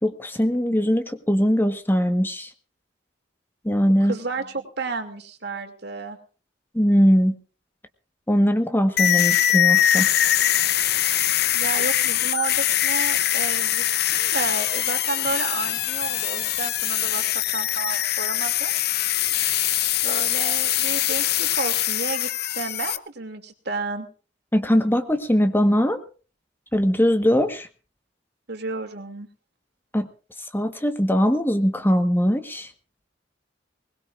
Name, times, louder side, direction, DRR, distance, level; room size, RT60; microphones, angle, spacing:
voice 1, 0.0-2.5 3.6-4.2 6.7-7.3 8.3-10.1 24.5-26.0 26.7-27.7 29.9-30.1 30.5-32.7, equal, 10° left, 7 dB, 1.3 m, -21 dB
voice 2, 4.0-6.2 11.5-17.2 17.5-18.7 20.0-24.1 28.5-29.3, right 3 dB, 60° right, 6 dB, 2.7 m, -31 dB
sound 1, 9.0-23.0, left 12 dB, 60° left, 0.8 m, -22 dB
22.0 x 20.0 x 2.5 m, 0.37 s
head